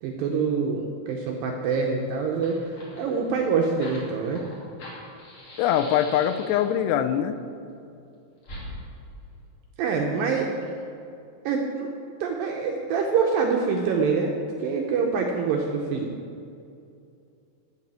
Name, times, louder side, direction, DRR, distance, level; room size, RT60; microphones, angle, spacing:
voice 1, 0.0-4.5 9.8-10.5 11.5-11.9 12.2-16.1, right 5 dB, 75° right, 1 dB, 2.1 m, -25 dB
Fire, 2.3-6.8 8.4-8.7, left 1 dB, 40° left, 3.5 m, -43 dB
voice 2, 5.6-7.4, left 10 dB, 85° left, 9 dB, 2.7 m, -23 dB
13.5 x 5.4 x 8.8 m, 2.6 s
omnidirectional pair, 4.8 m